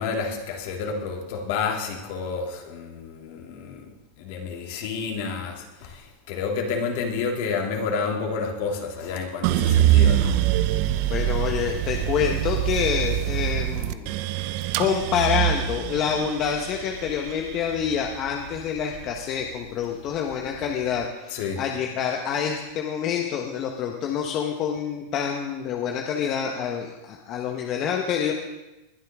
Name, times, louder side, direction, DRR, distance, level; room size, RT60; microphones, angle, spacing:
voice 1, 0.0-3.9 4.2-10.4 21.3-21.6, left 5 dB, 60° left, 1 dB, 2.9 m, -30 dB
sound 1, 9.4-19.6 20.1-20.9, right 13 dB, 55° right, 0.7 m, -24 dB
voice 2, 11.1-14.2 14.8-28.3, left 8 dB, 40° left, 2 dB, 1.3 m, -27 dB
20.5 x 11.5 x 3.7 m, 1.0 s
supercardioid pair, 140°, 0 cm